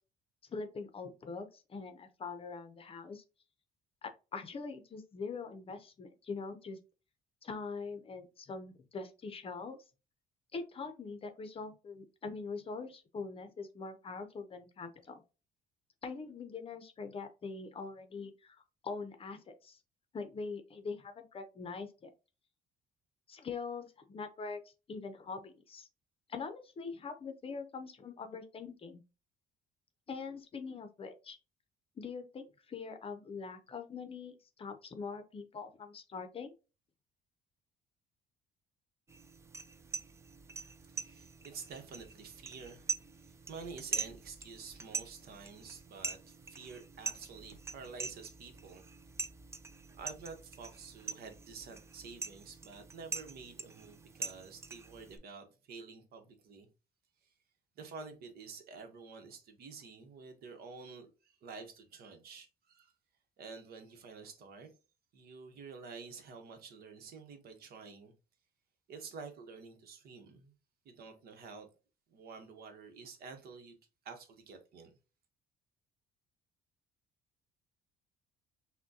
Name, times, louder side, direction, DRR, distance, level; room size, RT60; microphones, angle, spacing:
voice 1, 0.5-3.2 4.0-6.8 7.4-9.8 10.5-15.2 16.0-19.8 20.1-22.1 23.3-25.9 26.3-29.0 30.1-31.4 32.0-36.5, left 4 dB, 35° left, 0.6 m, -43 dB
sound 1, 39.1-55.2, right 4 dB, 15° right, 0.4 m, -44 dB
voice 2, 40.9-48.9 49.9-56.7 57.8-62.9 63.4-64.8 65.1-68.1 68.9-70.5 70.8-71.7 72.1-73.8 74.0-74.9, right 5 dB, 65° right, 1.0 m, -49 dB
5.9 x 2.2 x 2.7 m
cardioid pair, 110°, 17 cm